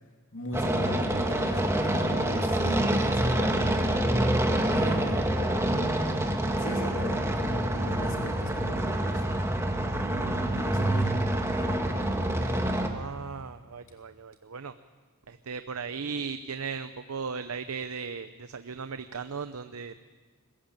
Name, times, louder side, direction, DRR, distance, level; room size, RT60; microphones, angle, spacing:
voice 1, 0.3-5.4 6.6-9.3 10.5-11.3, left 1 dB, 65° left, 2 dB, 3.0 m, -40 dB
sound 1, 0.5-12.9, right 1 dB, 15° right, 1.7 m, -26 dB
voice 2, 12.8-14.7 15.3-20.0, right 5 dB, 85° right, 10 dB, 0.7 m, -37 dB
21.5 x 15.5 x 9.0 m, 1.4 s
head